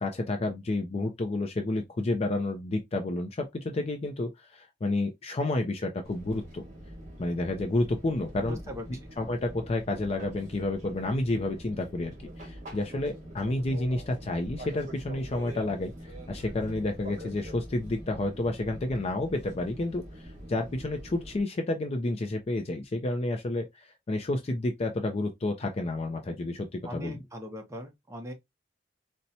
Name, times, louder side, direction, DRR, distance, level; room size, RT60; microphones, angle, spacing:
voice 1, 0.0-6.6 7.2-8.6 9.2-15.9 16.3-27.2, left 2 dB, 35° left, 0.4 m, -30 dB
Fixed-wing aircraft airplane, 6.0-21.4, equal, 40° right, 1.4 m, -44 dB
voice 2, 8.4-8.8 26.8-28.3, equal, 15° right, 0.7 m, -40 dB
4.2 x 2.1 x 2.7 m
head